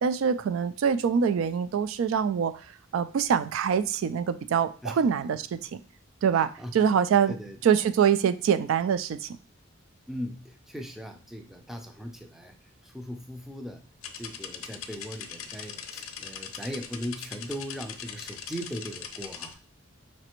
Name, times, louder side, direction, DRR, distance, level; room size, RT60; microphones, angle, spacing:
voice 1, 0.0-2.5 2.9-5.8 6.2-7.3 7.6-9.3, right 7 dB, 70° right, 12 dB, 0.3 m, -24 dB
voice 2, 6.3-6.9 7.3-7.6 10.1-12.5 12.8-13.8 14.2-19.6, equal, ahead, 4 dB, 0.4 m, -39 dB
sound 1, 14.0-19.5, left 8 dB, 75° left, 0.5 m, -41 dB
5.0 x 3.2 x 3.0 m, 0.38 s
head